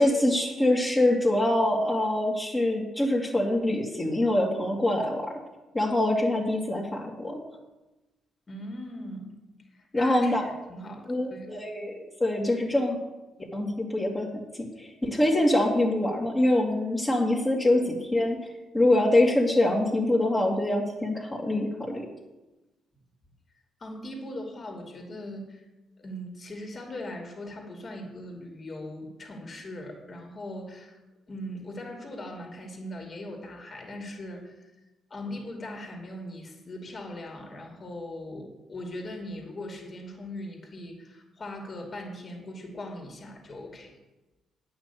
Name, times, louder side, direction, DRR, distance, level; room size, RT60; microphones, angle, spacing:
voice 1, 0.0-5.2 5.7-7.4 9.9-10.4 11.1-13.0 13.5-14.3 14.6-18.4 18.7-22.1, left 1 dB, 20° left, -3 dB, 2.1 m, -24 dB
voice 2, 8.5-9.3 9.7-11.5 23.8-25.6 26.0-31.0 31.3-34.6 35.1-43.9, left 1 dB, 35° left, 2 dB, 2.6 m, -40 dB
9.6 x 6.0 x 8.2 m, 1.0 s
cardioid pair, 90°, 0 cm